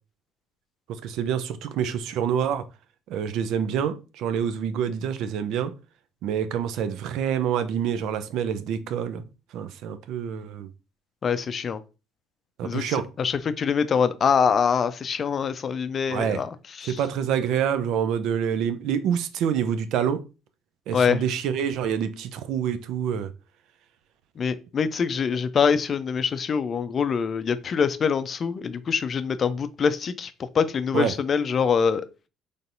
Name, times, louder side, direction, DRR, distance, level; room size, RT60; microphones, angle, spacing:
voice 1, 1.0-2.6 3.1-5.7 6.2-9.2 9.5-10.7 12.6-13.1 16.1-16.4 16.8-20.2 20.9-23.3 30.9-31.2, right 8 dB, 65° right, 0.4 m, -27 dB
voice 2, 11.2-11.8 12.6-16.5 16.8-17.0 20.9-21.2 24.4-30.3 30.5-32.3, left 6 dB, 45° left, 0.4 m, -24 dB
4.0 x 3.4 x 2.6 m
hypercardioid pair, 55°, 0 cm